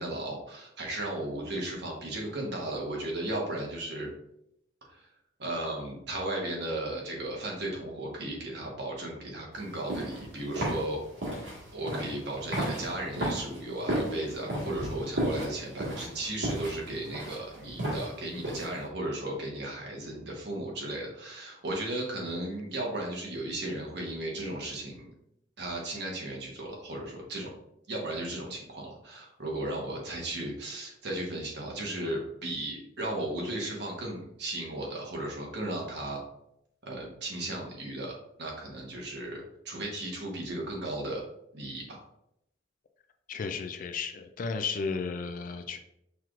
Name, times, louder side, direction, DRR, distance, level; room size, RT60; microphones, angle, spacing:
voice 1, 0.0-4.1 4.9-5.0 5.4-11.0 11.7-25.1 25.6-27.5 27.9-36.2 36.9-38.1 38.4-41.2 41.5-42.0, right 1 dB, 55° right, -1 dB, 1.1 m, -35 dB
sound 1, 9.6-18.8, right 1 dB, 75° right, 1.6 m, -34 dB
voice 2, 43.3-45.8, left 5 dB, 40° left, 8 dB, 0.3 m, -33 dB
5.7 x 3.1 x 2.4 m, 0.78 s
head